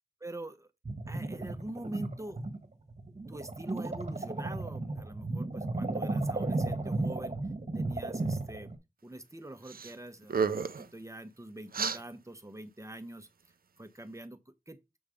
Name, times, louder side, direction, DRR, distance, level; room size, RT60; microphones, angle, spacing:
voice 1, 0.2-0.7 1.1-2.4 3.3-7.4 7.7-8.7 9.0-13.3 13.8-14.4 14.7-14.8, right 1 dB, 20° right, 1.0 m, -45 dB
sound 1, 0.8-8.8, right 2 dB, 50° right, 1.3 m, -34 dB
sound 2, 9.7-9.9 10.2-10.9 11.7-12.0, right 5 dB, 85° right, 0.5 m, -31 dB
7.0 x 3.6 x 5.0 m
wide cardioid pair, 50°, 15 cm